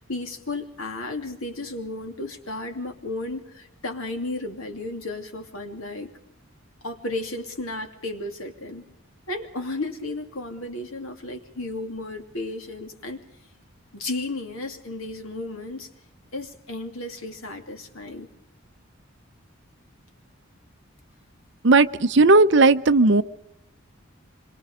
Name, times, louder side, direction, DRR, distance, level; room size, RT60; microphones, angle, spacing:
voice 1, 0.0-6.1 6.8-8.9 9.3-13.2 13.9-15.9 16.3-18.3, left 2 dB, 85° left, 4 dB, 2.9 m, -33 dB
voice 2, 21.6-23.2, right 3 dB, 60° right, 9 dB, 0.8 m, -16 dB
26.0 x 22.5 x 5.1 m, 0.80 s
head